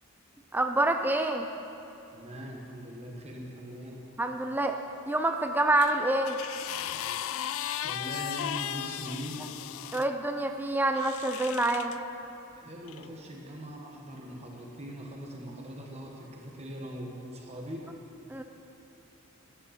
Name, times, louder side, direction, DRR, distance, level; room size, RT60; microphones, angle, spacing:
voice 1, 0.5-1.5 4.2-4.8 5.1-6.4 9.9-11.9 18.3-18.4, right 2 dB, 10° right, 5 dB, 0.4 m, -27 dB
voice 2, 2.1-4.0 7.8-9.4 12.6-17.9, equal, 30° right, -1 dB, 1.3 m, -41 dB
sound 1, 5.8-10.1 10.9-12.0 12.9-13.0, left 11 dB, 65° left, 0.3 m, -36 dB
15.0 x 9.8 x 4.3 m, 2.8 s
head